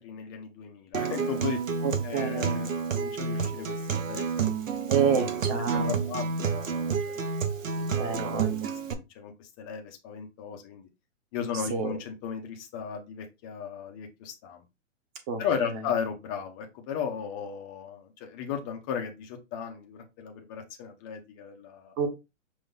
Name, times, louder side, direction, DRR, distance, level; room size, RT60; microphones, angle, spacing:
voice 1, 0.0-1.6 2.0-5.2 5.7-7.9 8.6-10.9 11.3-14.6 15.4-21.9, left 7 dB, 15° left, 0.5 m, -36 dB
Acoustic guitar, 0.9-8.9, right 5 dB, 70° right, 1.0 m, -30 dB
voice 2, 1.8-2.5 4.9-6.0 8.0-8.7 11.7-11.9 15.3-15.7 22.0-22.1, right 6 dB, 20° right, 0.8 m, -28 dB
5.5 x 2.6 x 3.6 m
hypercardioid pair, 145°, 39 cm